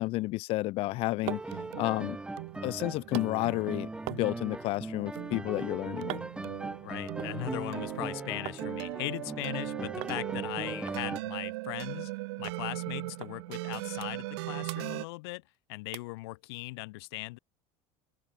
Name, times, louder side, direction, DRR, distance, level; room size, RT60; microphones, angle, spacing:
voice 1, 0.0-1.4 1.8-2.2 2.6-6.2, left 20 dB, 45° left, 1.1 m, -31 dB
sound 1, 0.8-8.7 9.0-9.6 10.0-10.2 10.5-10.6 10.9-12.2 12.5-12.6 13.2-13.3 13.7-14.4 14.6-15.6 15.9-16.2 16.7-16.8, right 22 dB, 50° right, 2.4 m, -45 dB
sound 2, 0.9-15.1, right 23 dB, 80° right, 3.2 m, -40 dB
sound 3, 1.2-11.2, right 2 dB, 5° right, 3.9 m, -39 dB
voice 2, 6.8-12.1 12.4-15.4 15.7-17.4, left 23 dB, 80° left, 3.2 m, -39 dB
open air
cardioid pair, 160°, 13 cm